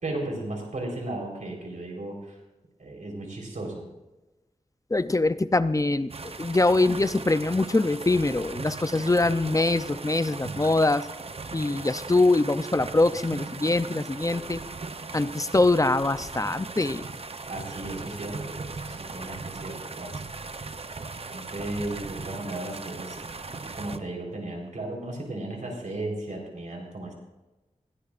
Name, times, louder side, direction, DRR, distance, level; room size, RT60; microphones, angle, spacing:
voice 1, 0.0-2.4 2.8-3.9 17.5-20.7 21.3-23.4 23.8-27.1, right 2 dB, 80° right, 0 dB, 4.2 m, -35 dB
voice 2, 4.9-6.1 6.4-11.1 11.5-14.6 15.1-17.0, left 2 dB, 25° left, 12 dB, 0.6 m, -23 dB
sound 1, 6.1-24.0, right 3 dB, 50° right, 0.8 m, -38 dB
20.0 x 16.5 x 2.5 m, 1.1 s
wide cardioid pair, 65°, 13 cm